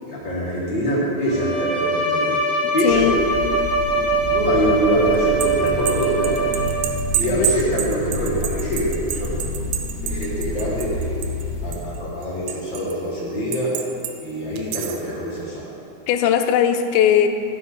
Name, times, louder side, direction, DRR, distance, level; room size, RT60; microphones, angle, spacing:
voice 1, 0.1-3.3 3.9-6.5 7.1-9.5 10.0-11.3 11.6-13.8 14.2-15.7, equal, 65° left, -8 dB, 1.1 m, -24 dB
Bowed string instrument, 1.2-7.1, right 3 dB, 15° right, 1.5 m, -22 dB
voice 2, 2.6-3.2 7.3-7.5 16.1-17.3, left 9 dB, 85° left, 7 dB, 2.8 m, -19 dB
sound 1, 2.9-11.8, left 2 dB, 45° right, 1.3 m, -29 dB
sound 2, 5.1-11.5 11.7-12.9 13.5-14.1 14.6-15.1, right 12 dB, 85° right, 2.8 m, -28 dB
15.0 x 6.1 x 3.8 m, 2.6 s
omnidirectional pair, 5.1 m